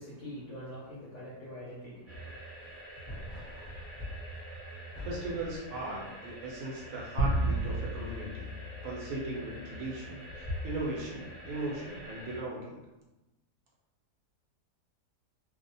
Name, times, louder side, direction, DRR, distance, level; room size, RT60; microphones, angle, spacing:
voice 1, 0.0-2.4, equal, 70° left, -7 dB, 0.7 m, -44 dB
sound 1, 2.1-12.4, equal, ahead, 0.9 m, -44 dB
voice 2, 5.0-8.5 8.8-12.8, right 2 dB, 70° right, -3 dB, 1.0 m, -38 dB
sound 2, 7.2-9.8, right 1 dB, 85° left, 1.2 m, -32 dB
2.7 x 2.0 x 2.6 m, 1.1 s
omnidirectional pair, 1.7 m